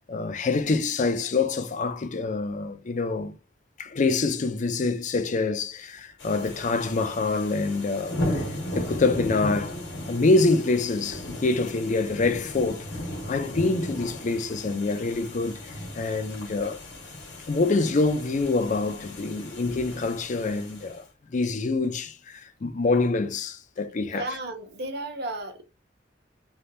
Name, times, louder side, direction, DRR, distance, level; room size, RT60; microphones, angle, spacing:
voice 1, 0.1-3.4 3.8-8.4 8.7-9.8 10.1-12.8 13.3-15.6 15.9-16.8 17.5-21.0 21.3-24.3, left 3 dB, 40° left, 0.4 m, -26 dB
sound 1, 6.2-21.0, left 1 dB, 90° left, 1.4 m, -36 dB
voice 2, 24.1-25.6, right 2 dB, 60° right, 0.7 m, -33 dB
3.4 x 2.3 x 2.6 m
head